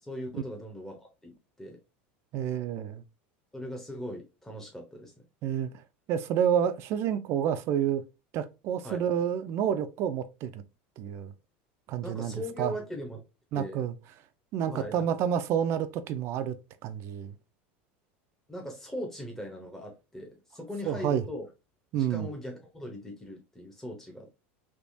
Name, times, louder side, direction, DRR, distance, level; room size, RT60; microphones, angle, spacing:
voice 1, 0.0-1.8 3.5-5.1 8.8-9.0 12.0-13.2 13.5-13.8 14.7-15.1 18.5-21.5 22.0-24.4, equal, 5° left, 0.9 m, -40 dB
voice 2, 2.3-3.0 5.4-5.7 6.1-8.0 8.3-10.6 11.0-11.3 11.9-12.7 13.5-13.9 14.5-16.6 16.8-17.3 20.9-21.2 21.9-22.3, right 9 dB, 50° right, 0.4 m, -29 dB
3.4 x 2.9 x 2.6 m
supercardioid pair, 125°, 6 cm